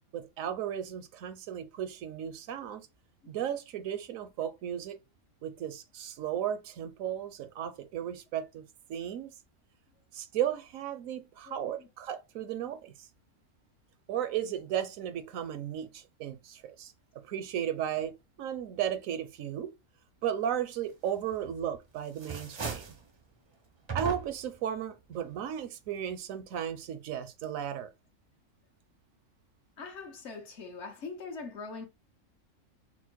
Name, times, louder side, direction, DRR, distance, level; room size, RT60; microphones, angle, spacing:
voice 1, 0.1-2.9 3.3-5.0 5.4-8.6 8.9-9.3 10.1-12.9 14.1-16.9 17.2-18.1 18.4-19.7 20.2-22.8 23.9-27.9, right 10 dB, 80° right, 1.0 m, -35 dB
voice 2, 11.5-11.9 29.8-31.9, left 4 dB, 60° left, 1.2 m, -42 dB
sound 1, 21.3-21.8 22.1-23.0 23.9-24.6, right 5 dB, 40° right, 0.4 m, -38 dB
4.3 x 2.0 x 4.4 m
omnidirectional pair, 1.4 m